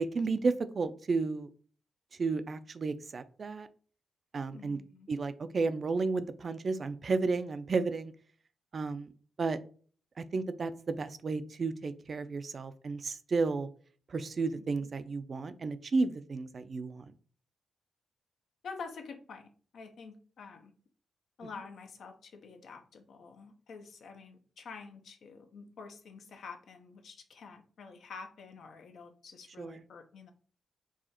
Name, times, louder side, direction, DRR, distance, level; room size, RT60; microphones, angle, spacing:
voice 1, 0.0-1.5 2.2-3.7 4.3-4.8 5.1-8.1 8.7-9.1 9.4-9.6 10.2-13.7 14.1-17.0 29.6-29.8, right 4 dB, 50° right, 11 dB, 0.4 m, -32 dB
voice 2, 4.5-5.1 14.5-14.9 18.6-20.7 21.4-30.3, left 5 dB, 75° left, 5 dB, 0.8 m, -48 dB
4.8 x 2.4 x 4.3 m, 0.43 s
cardioid pair, 85°, 0 cm